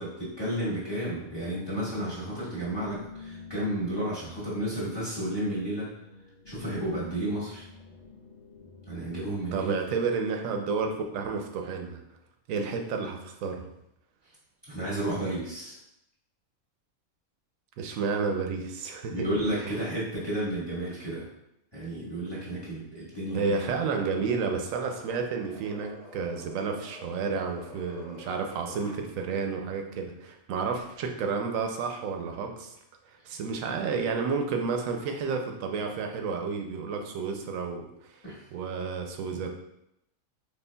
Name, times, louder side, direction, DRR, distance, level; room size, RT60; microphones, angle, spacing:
voice 1, 0.0-5.9 6.5-7.6 8.9-9.7 14.7-15.8 19.1-21.3 21.7-23.8 38.2-38.4, right 1 dB, 20° left, -8 dB, 1.1 m, -32 dB
sound 1, 1.0-9.5, left 4 dB, 65° left, 1.2 m, -49 dB
voice 2, 9.5-12.0 12.5-13.7 17.8-19.3 19.6-19.8 23.3-32.7 33.1-38.2 38.5-39.5, right 5 dB, 75° right, 3 dB, 1.0 m, -31 dB
sound 2, 23.2-29.0, left 2 dB, 40° left, 1.0 m, -48 dB
4.3 x 3.2 x 2.2 m, 0.81 s
omnidirectional pair, 1.4 m